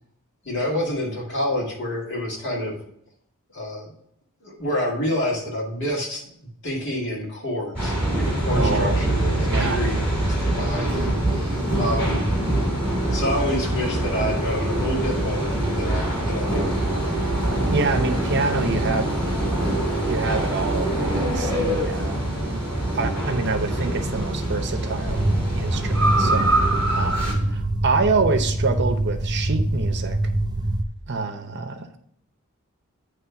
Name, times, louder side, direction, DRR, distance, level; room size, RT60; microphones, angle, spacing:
voice 1, 0.4-2.8 3.5-3.9 4.4-10.0 10.5-12.3 13.1-16.8 27.2-27.5, left 1 dB, 55° left, -2 dB, 2.2 m, -28 dB
sound 1, 7.8-27.3, right 1 dB, 5° left, 2.9 m, -24 dB
voice 2, 8.5-9.0 9.4-9.8 17.7-19.1 20.1-22.4 22.9-25.2 25.6-30.2 31.1-32.0, right 4 dB, 50° right, 7 dB, 0.8 m, -26 dB
sound 2, 25.1-30.8, right 1 dB, 20° right, 0.4 m, -24 dB
9.5 x 3.2 x 5.8 m, 0.70 s
head